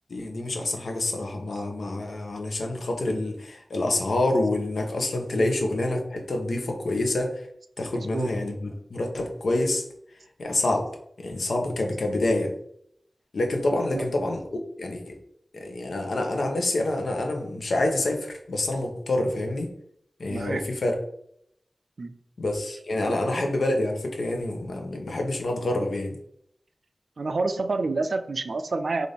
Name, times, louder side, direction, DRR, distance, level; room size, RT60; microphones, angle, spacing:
voice 1, 0.1-7.5 7.8-9.8 10.4-10.9 11.2-12.5 13.3-15.2 15.5-19.7 20.2-21.0 22.4-26.2, left 2 dB, 85° left, 3 dB, 0.7 m, -27 dB
voice 2, 7.9-8.3 13.9-14.0 20.3-20.6 22.0-22.2 23.0-23.1 27.2-29.1, right 3 dB, 75° right, 9 dB, 0.3 m, -28 dB
3.9 x 2.5 x 3.3 m, 0.70 s
wide cardioid pair, 95°, 0 cm